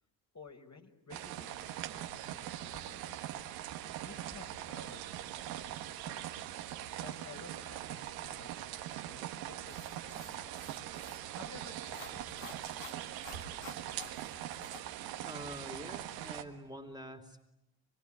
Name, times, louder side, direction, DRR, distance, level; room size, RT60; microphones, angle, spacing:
voice 1, 0.3-3.4 4.0-6.4 6.9-10.8 11.3-13.9, left 3 dB, 35° left, 3 dB, 4.7 m, -55 dB
sound 1, 1.1-16.4, right 12 dB, 85° right, 1.6 m, -42 dB
sound 2, 9.7-14.8, left 7 dB, 70° left, 2.5 m, -53 dB
voice 2, 15.2-17.5, right 1 dB, 10° right, 6 dB, 3.0 m, -46 dB
25.5 x 24.0 x 9.9 m, 0.89 s
hypercardioid pair, 50°, 47 cm